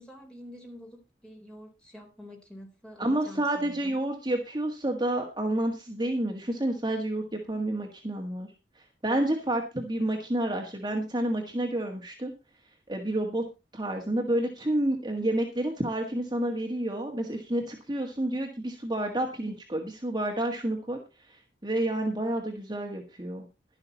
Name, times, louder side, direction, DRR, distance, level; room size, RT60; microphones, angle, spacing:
voice 1, 0.0-4.0, left 1 dB, 5° left, 1 dB, 3.9 m, -47 dB
voice 2, 3.0-8.5 8.8-12.3 12.9-13.4 13.7-21.0 21.2-23.5, right 1 dB, 25° right, 2 dB, 1.7 m, -29 dB
12.0 x 11.5 x 4.1 m, 0.28 s
head